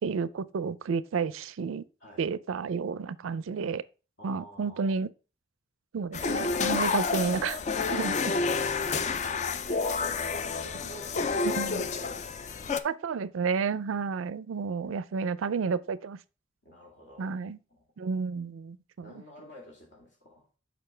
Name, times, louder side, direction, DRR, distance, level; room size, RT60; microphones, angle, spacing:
voice 1, 0.0-1.8 2.2-3.8 4.2-5.1 5.9-7.6 7.9-8.1 11.4-11.9 12.8-16.2 17.2-17.6 18.0-19.1, right 5 dB, 85° right, 0.4 m, -31 dB
voice 2, 2.0-2.3 4.2-5.0 9.3-9.4 9.6-12.8 14.6-15.0 16.6-17.4 17.7-17.8 19.0-20.5, equal, 60° left, 2.3 m, -49 dB
sound 1, 6.1-12.8, left 4 dB, 35° left, 0.3 m, -29 dB
6.9 x 5.1 x 3.2 m
head